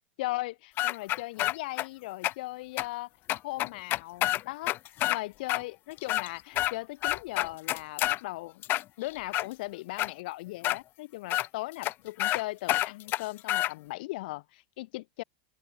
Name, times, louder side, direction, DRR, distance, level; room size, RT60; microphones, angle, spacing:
voice 1, 0.2-3.1 3.4-4.7 5.1-8.6 9.0-15.2, left 20 dB, 70° left, 1.7 m, -38 dB
sound 1, 0.8-1.9 2.2-2.3 2.8-2.9 3.3-5.2 5.5-5.6 6.0-6.7 7.0-8.2 8.6-9.5 10.0-10.1 10.6-10.8 11.3-11.5 11.8-11.9 12.2-12.4 12.7-13.7, left 16 dB, 45° left, 2.1 m, -28 dB
open air
supercardioid pair, 125°, 5 cm